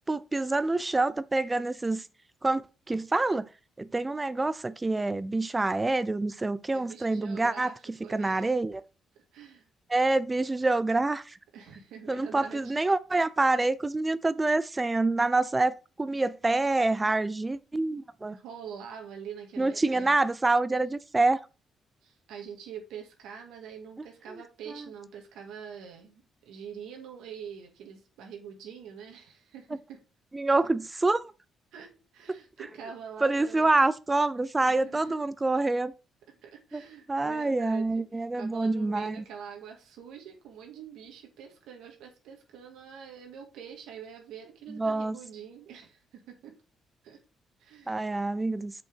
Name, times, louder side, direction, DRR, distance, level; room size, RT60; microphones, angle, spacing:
voice 1, 0.1-2.1 2.4-3.5 3.8-8.8 9.9-11.4 12.1-18.4 19.6-21.4 24.3-24.4 24.7-24.9 30.3-31.3 32.3-32.4 33.2-35.9 36.7-36.8 37.1-39.2 44.7-45.2 47.9-48.7, right 2 dB, 20° right, 0.5 m, -27 dB
voice 2, 6.7-7.7 8.0-8.6 9.3-9.7 11.5-12.7 18.3-20.2 22.0-30.0 31.7-33.7 34.7-35.2 36.4-46.5 47.0-47.2 47.6-48.0, right 7 dB, 85° right, 2.0 m, -45 dB
6.3 x 5.5 x 4.7 m
cardioid pair, 90°, 0 cm